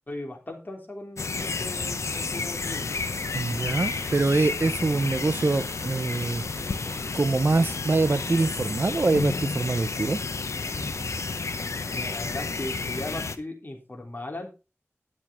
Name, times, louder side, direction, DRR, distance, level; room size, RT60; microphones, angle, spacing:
voice 1, 0.1-3.0 11.9-14.5, left 1 dB, 40° left, 3.6 m, -37 dB
sound 1, 1.2-13.4, left 4 dB, 85° left, 0.8 m, -31 dB
sound 2, 2.5-9.0, right 3 dB, 70° right, 1.6 m, -49 dB
voice 2, 3.3-6.4 7.1-10.2, right 3 dB, 50° right, 0.6 m, -24 dB
sound 3, 10.1-11.3, right 1 dB, 25° right, 4.7 m, -51 dB
11.0 x 7.4 x 4.3 m
wide cardioid pair, 60°, 5 cm